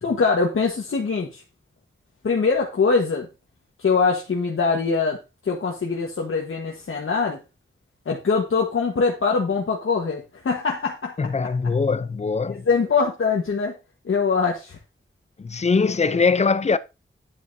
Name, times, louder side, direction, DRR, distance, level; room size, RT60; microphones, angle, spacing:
voice 1, 0.0-1.4 2.2-3.3 3.8-5.2 5.4-7.4 8.0-11.3 12.5-13.7 14.0-14.8, left 4 dB, 90° left, 1.3 m, -23 dB
voice 2, 11.2-12.7 15.4-16.8, left 4 dB, 35° left, 0.5 m, -22 dB
9.6 x 7.7 x 2.7 m
wide cardioid pair, 105°, 21 cm